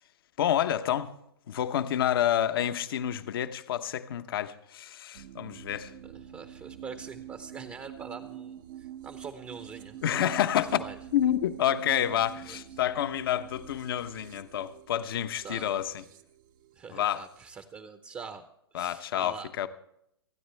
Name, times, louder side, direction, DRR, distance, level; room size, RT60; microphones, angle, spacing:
voice 1, 0.4-1.1 1.5-5.9 10.0-10.8 11.1-16.0 16.9-17.2 18.7-19.7, left 11 dB, 60° left, 1.0 m, -28 dB
sound 1, 5.1-17.6, right 10 dB, 50° right, 0.9 m, -47 dB
voice 2, 6.0-10.0 10.6-11.0 12.2-12.8 15.4-15.9 16.7-18.4 18.7-19.5, right 5 dB, 20° right, 0.8 m, -44 dB
28.5 x 9.6 x 3.4 m
hypercardioid pair, 125°, 14 cm